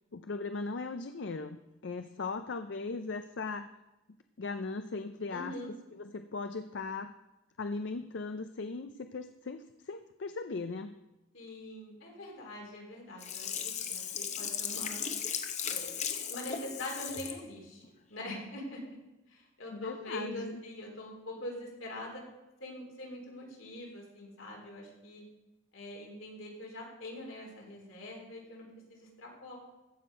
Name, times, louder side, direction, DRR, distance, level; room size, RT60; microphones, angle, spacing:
voice 1, 0.1-3.7 4.4-5.6 6.0-7.1 7.6-11.0 19.7-20.6, left 3 dB, 65° left, 8 dB, 0.5 m, -38 dB
voice 2, 5.3-5.7 11.3-15.0 15.7-15.9 16.3-17.8 18.1-18.8 19.3-22.2 22.6-25.2 25.7-29.6, left 1 dB, 85° left, -1 dB, 3.5 m, -43 dB
Sink (filling or washing), 13.2-17.4 17.8-17.9, left 7 dB, 35° left, 0.8 m, -36 dB
15.0 x 6.4 x 5.2 m, 1.0 s
head